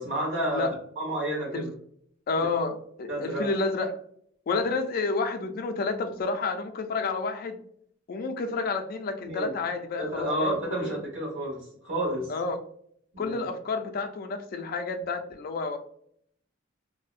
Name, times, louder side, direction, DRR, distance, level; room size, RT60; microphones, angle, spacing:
voice 1, 0.0-1.7 3.1-3.5 9.2-9.5 10.0-12.3 13.1-13.4, right 1 dB, 75° right, -3 dB, 1.2 m, -30 dB
voice 2, 2.3-4.0 4.5-7.6 8.1-11.0 12.3-12.6 13.2-15.8, left 3 dB, 50° left, 6 dB, 0.3 m, -30 dB
2.6 x 2.1 x 2.4 m, 0.66 s
head